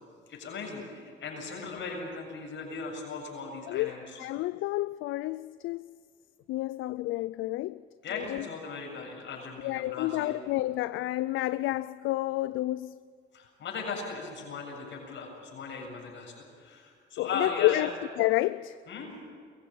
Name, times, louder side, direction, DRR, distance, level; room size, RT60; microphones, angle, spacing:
voice 1, 0.3-4.2 8.0-10.4 13.3-17.9 18.9-19.2, left 4 dB, 70° left, 7.4 m, -38 dB
voice 2, 4.2-5.9 6.5-7.8 8.1-8.4 9.6-12.9 17.2-17.9 18.2-18.8, left 17 dB, 90° left, 0.4 m, -29 dB
23.5 x 15.5 x 8.7 m
cardioid pair, 90°, 20 cm